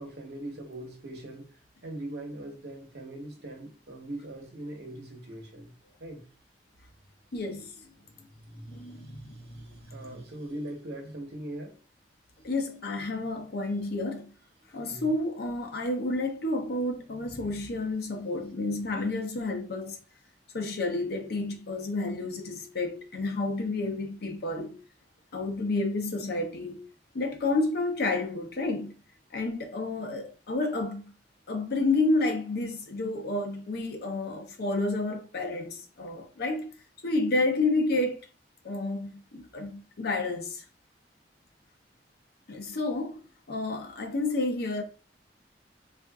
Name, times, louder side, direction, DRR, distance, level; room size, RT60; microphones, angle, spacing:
voice 1, 0.0-1.5 1.8-5.7 6.0-6.3 8.9-11.7 14.9-15.1, right 1 dB, 70° right, 1.0 m, -41 dB
voice 2, 7.3-7.7 8.5-10.2 12.4-14.3 14.7-20.0 20.5-24.8 25.3-26.8 27.1-28.9 29.3-31.1 31.5-36.7 37.0-38.2 38.6-40.6 42.5-43.2 43.5-44.8, left 2 dB, 65° left, 0.6 m, -30 dB
3.5 x 2.5 x 2.3 m
head